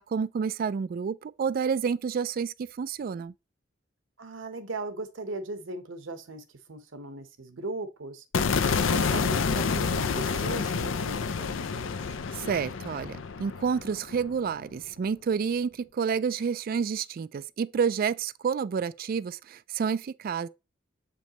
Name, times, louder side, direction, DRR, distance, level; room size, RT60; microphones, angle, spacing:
voice 1, 0.0-3.3 12.3-20.5, right 6 dB, 45° right, 0.3 m, -29 dB
voice 2, 4.2-8.2 8.7-12.0, right 2 dB, 75° right, 1.0 m, -38 dB
sound 1, 8.3-14.6, left 5 dB, 80° left, 0.5 m, -28 dB
7.4 x 5.2 x 2.9 m
head